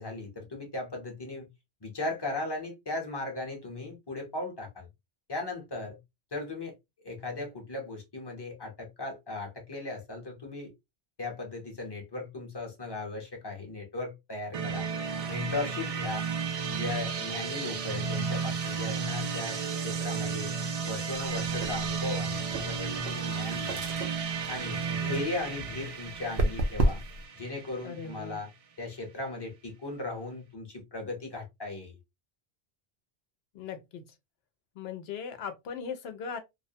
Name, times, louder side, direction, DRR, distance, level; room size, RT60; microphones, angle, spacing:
voice 1, 0.0-1.5 1.8-4.9 5.3-6.0 6.3-6.7 7.0-10.7 11.2-14.9 15.3-16.3 16.7-20.5 20.8-23.8 24.5-27.0 27.3-28.5 28.8-31.9, left 2 dB, 25° left, 0.7 m, -37 dB
sound 1, 14.5-28.3, right 5 dB, 55° right, 0.4 m, -33 dB
sound 2, 21.2-27.3, right 1 dB, 80° right, 0.8 m, -33 dB
voice 2, 27.8-28.5 33.5-34.1 34.8-36.4, left 6 dB, 80° left, 0.8 m, -39 dB
2.4 x 2.1 x 2.6 m
omnidirectional pair, 1.1 m